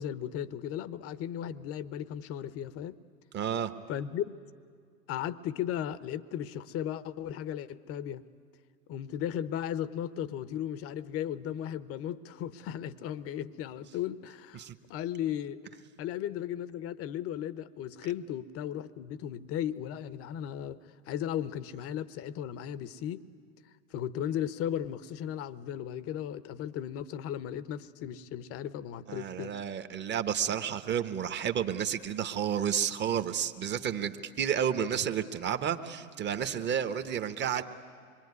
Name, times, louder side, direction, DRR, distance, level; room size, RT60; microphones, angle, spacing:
voice 1, 0.0-3.0 3.9-4.3 5.1-8.2 8.9-15.6 16.0-20.8 21.1-23.2 23.9-29.5, left 10 dB, 35° left, 16 dB, 0.9 m, -36 dB
voice 2, 3.3-3.7 14.5-14.7 29.1-37.6, right 8 dB, 25° right, 9 dB, 1.2 m, -31 dB
26.0 x 22.5 x 9.6 m, 2.1 s
hypercardioid pair, 110°, 43 cm